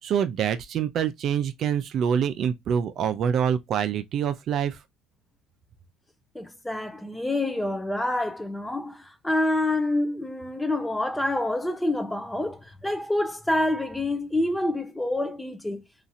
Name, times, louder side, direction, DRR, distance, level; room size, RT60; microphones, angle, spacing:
voice 1, 0.0-4.8, right 8 dB, 50° right, 0.4 m, -26 dB
voice 2, 6.3-15.8, left 1 dB, 5° left, 0.5 m, -27 dB
2.8 x 2.5 x 2.6 m
cardioid pair, 105°, 0 cm